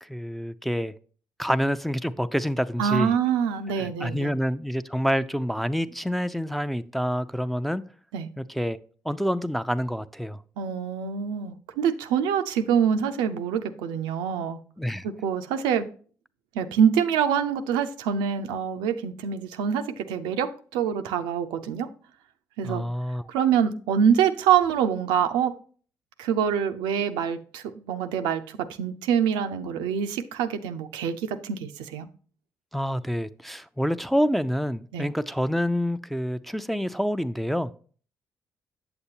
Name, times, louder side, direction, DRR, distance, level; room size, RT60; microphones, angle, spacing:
voice 1, 0.0-0.9 1.4-3.1 3.8-7.8 8.4-8.8 9.0-10.4 14.8-15.1 22.6-23.3 32.7-37.7, equal, ahead, 0.4 m, -27 dB
voice 2, 2.8-4.3 8.1-8.3 10.6-14.6 15.0-15.9 16.5-21.9 22.6-22.8 23.3-25.5 26.2-32.1 34.9-35.1, right 8 dB, 85° right, 0.5 m, -25 dB
7.9 x 6.9 x 2.8 m
supercardioid pair, 50°, 8 cm